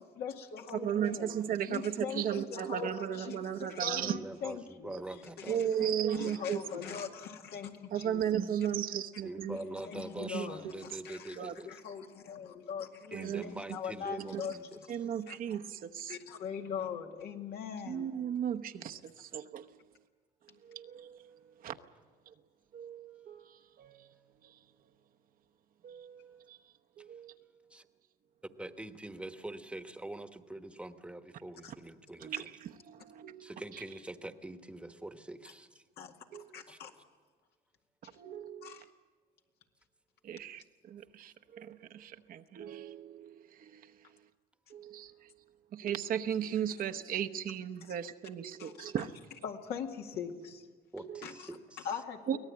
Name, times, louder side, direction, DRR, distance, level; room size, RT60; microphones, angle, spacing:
voice 1, 0.2-1.3 1.7-5.0 5.4-8.2 9.5-11.4 11.6-15.4 16.1-18.2 31.6-31.7 32.3-32.4 36.0-36.1 36.5-36.9 38.6-38.8 47.8-48.0 48.6-49.1 49.4-50.7 51.2-51.5 51.8-52.4, left 7 dB, 70° left, 3 dB, 2.1 m, -41 dB
voice 2, 0.8-4.2 5.5-6.6 7.9-9.6 10.2-10.7 11.4-11.5 13.1-13.5 14.2-14.4 14.9-16.2 17.9-19.7 20.6-21.4 21.6-21.8 22.7-24.1 24.4-24.5 25.8-26.6 27.0-27.3 32.2-33.8 36.3-36.5 38.2-38.8 40.2-43.9 44.7-45.1 45.7-49.1 51.0-51.2 52.3-52.4, right 9 dB, 55° right, 5 dB, 1.0 m, -36 dB
voice 3, 4.0-5.6 9.2-11.7 13.1-14.8 27.7-27.9 28.6-32.5 33.4-35.8 36.7-36.8 38.7-38.8 50.9-51.9, right 1 dB, 5° right, 9 dB, 1.3 m, -44 dB
23.5 x 18.0 x 8.6 m, 1.5 s
cardioid pair, 110°, 17 cm